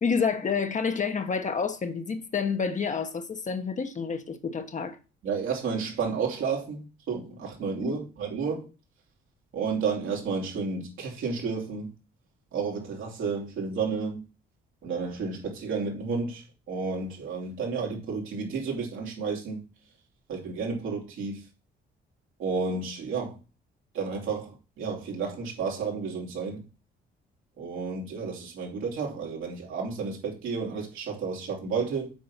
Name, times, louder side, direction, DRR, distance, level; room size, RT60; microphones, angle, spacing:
voice 1, 0.0-5.0 7.8-8.0, left 5 dB, 40° left, 1.2 m, -29 dB
voice 2, 5.2-8.7 9.5-11.9 12.5-14.2 14.8-19.6 20.3-21.4 22.4-23.4 23.9-26.6 27.6-32.1, right 5 dB, 80° right, 3.2 m, -31 dB
7.5 x 4.6 x 5.6 m
cardioid pair, 90°, 20 cm